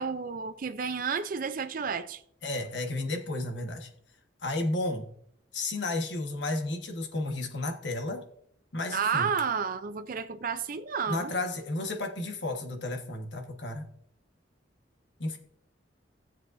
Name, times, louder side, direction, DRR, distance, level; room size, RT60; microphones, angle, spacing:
voice 1, 0.0-2.2 8.9-11.3, right 6 dB, 50° right, 0.5 m, -31 dB
voice 2, 2.4-3.9 4.4-5.1 5.5-8.2 8.7-9.3 11.1-13.9 15.2-15.4, left 2 dB, 70° left, 1.4 m, -32 dB
15.5 x 7.4 x 2.6 m
head